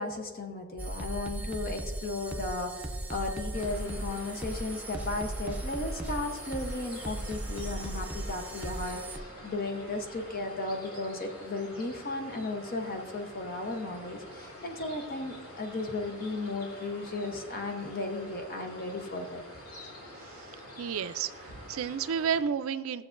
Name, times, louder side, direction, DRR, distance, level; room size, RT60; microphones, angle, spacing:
voice 1, 0.0-19.4, left 2 dB, 45° left, 4 dB, 0.8 m, -35 dB
sound 1, 0.8-9.2, right 1 dB, 10° right, 0.6 m, -37 dB
sound 2, 3.5-22.4, left 1 dB, 85° left, 2.7 m, -47 dB
voice 2, 20.8-23.1, right 7 dB, 80° right, 12 dB, 0.4 m, -32 dB
17.0 x 7.4 x 2.5 m, 1.5 s
head